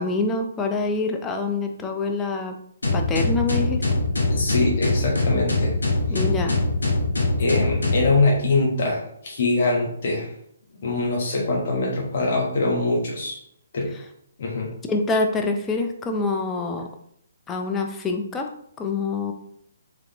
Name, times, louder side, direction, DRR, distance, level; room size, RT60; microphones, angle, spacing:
voice 1, 0.0-2.6 2.9-3.9 6.1-6.6 13.9-14.0 14.9-16.9 17.5-18.5 18.8-19.3, left 3 dB, 15° left, 3 dB, 0.5 m, -26 dB
sound 1, 2.8-8.1, left 2 dB, 80° left, 1.0 m, -22 dB
voice 2, 4.3-5.7 7.4-10.3 10.8-13.3 13.7-13.9 14.4-14.7, left 2 dB, 55° left, -3 dB, 1.2 m, -23 dB
3.7 x 3.3 x 3.0 m, 0.68 s
figure-of-eight pair, 135°, 0 cm